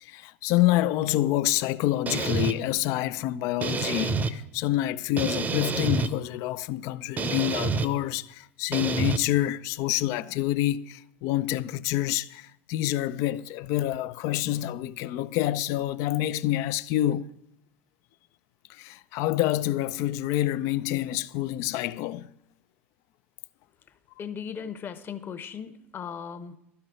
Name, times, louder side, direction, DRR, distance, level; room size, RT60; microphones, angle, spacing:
voice 1, 0.0-17.3 18.7-22.3, left 14 dB, 50° left, 0.5 m, -27 dB
sound 1, 2.1-2.5 3.6-4.3 5.2-6.1 7.2-7.9 8.7-9.2, right 4 dB, 25° right, 0.8 m, -27 dB
voice 2, 24.2-26.6, left 7 dB, 30° left, 1.0 m, -37 dB
12.5 x 5.8 x 9.1 m
figure-of-eight pair, 75°, 7 cm